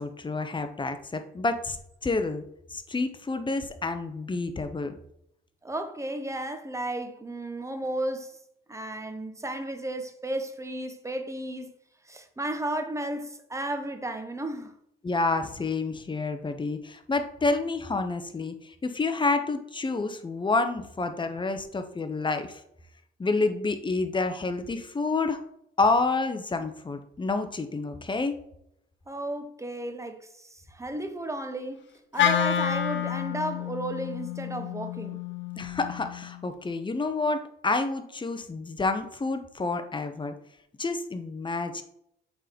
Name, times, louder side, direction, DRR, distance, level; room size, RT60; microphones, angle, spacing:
voice 1, 0.0-1.8 2.0-2.4 2.7-4.9 15.0-22.6 23.2-25.4 25.8-28.4 35.6-40.3 40.8-41.8, left 3 dB, 25° left, 0.9 m, -29 dB
voice 2, 5.6-8.4 8.7-11.7 12.1-14.7 29.1-35.2, right 1 dB, 15° right, 1.1 m, -34 dB
Wind instrument woodwind instrument, 32.2-36.4, left 9 dB, 70° left, 0.8 m, -29 dB
7.3 x 3.9 x 5.2 m
cardioid pair, 90°, 20 cm